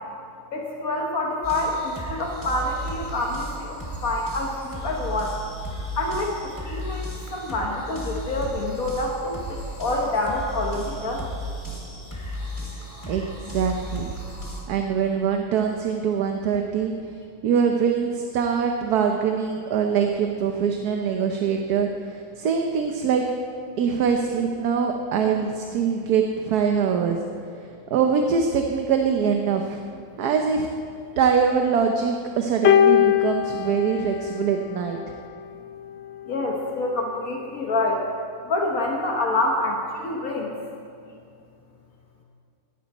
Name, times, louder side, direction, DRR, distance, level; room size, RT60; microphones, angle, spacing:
voice 1, 0.5-5.3 5.8-11.3 36.3-38.1 38.5-40.5, left 2 dB, 60° left, 0 dB, 1.7 m, -27 dB
sound 1, 1.4-14.6, right 1 dB, 10° left, 2.5 m, -34 dB
voice 2, 13.1-14.1 14.7-16.9 17.4-23.2 23.8-27.2 27.9-29.8 30.2-30.7 31.2-35.0, right 6 dB, 75° right, 3 dB, 1.3 m, -23 dB
sound 2, 32.6-35.1 36.1-36.3, left 10 dB, 85° left, 0.5 m, -21 dB
18.0 x 12.0 x 4.2 m, 2.5 s
omnidirectional pair, 1.7 m